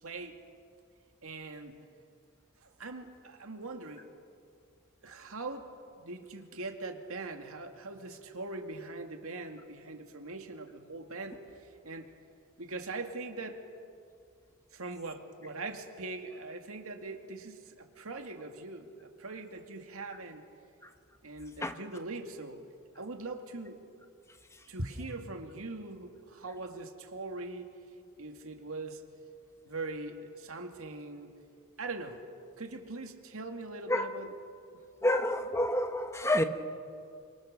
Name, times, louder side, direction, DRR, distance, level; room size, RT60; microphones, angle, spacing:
voice 1, 0.0-0.4 1.2-1.8 2.8-4.1 5.0-5.7 6.0-11.4 11.8-12.1 12.6-13.6 14.7-20.4 21.2-22.7 23.0-23.8 24.7-27.7 28.2-29.0 29.7-31.3 31.8-32.2 32.6-34.3, right 3 dB, 70° right, 5 dB, 2.3 m, -41 dB
voice 2, 35.0-36.4, left 1 dB, 15° left, 7 dB, 1.1 m, -28 dB
29.0 x 25.0 x 6.8 m, 2.4 s
head